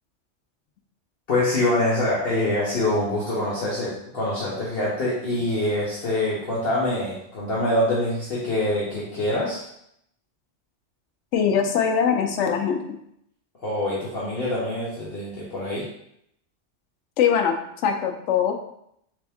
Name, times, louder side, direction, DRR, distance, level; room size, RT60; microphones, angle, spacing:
voice 1, 1.3-9.6 13.6-15.8, left 1 dB, 55° left, -6 dB, 1.1 m, -25 dB
voice 2, 11.3-13.0 17.2-17.6 17.8-18.5, left 7 dB, 80° left, 4 dB, 0.9 m, -22 dB
3.5 x 3.4 x 3.4 m, 0.73 s
omnidirectional pair, 1.2 m